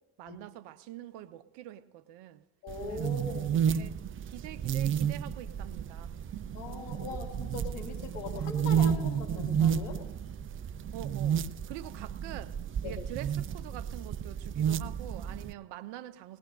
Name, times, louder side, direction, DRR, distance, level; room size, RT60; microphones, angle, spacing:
voice 1, 0.2-2.4 2.9-3.4 3.7-6.1 10.9-11.4 11.7-12.6 12.8-16.4, right 13 dB, 60° right, 0.7 m, -45 dB
voice 2, 2.6-3.5 6.5-10.0 12.8-12.9, left 4 dB, 70° left, 2.5 m, -40 dB
sound 1, 2.7-15.5, right 8 dB, 30° right, 0.4 m, -32 dB
21.0 x 19.5 x 2.6 m
figure-of-eight pair, 50°, 47 cm